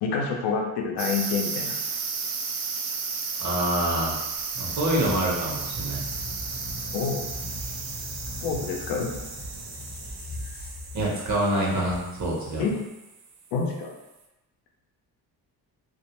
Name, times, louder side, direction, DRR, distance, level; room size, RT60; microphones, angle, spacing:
voice 1, 0.0-1.7 6.9-7.3 8.4-9.1 12.6-12.8 13.5-13.9, left 5 dB, 85° left, 1 dB, 0.6 m, -27 dB
sound 1, 1.0-13.3, right 5 dB, 80° right, 0.5 m, -34 dB
voice 2, 3.4-4.2 4.5-6.0 10.9-12.6, right 1 dB, 45° right, -4 dB, 0.9 m, -26 dB
Squeak, 3.9-11.5, left 2 dB, 25° left, 0.6 m, -40 dB
sound 2, 5.7-5.8 6.3-6.8 7.3-7.7 8.2-8.6 9.1-9.5 10.0-10.4 10.9-11.4 11.9-12.3, right 2 dB, 30° right, 0.5 m, -40 dB
2.4 x 2.1 x 2.9 m, 1.0 s
cardioid pair, 105°, 40 cm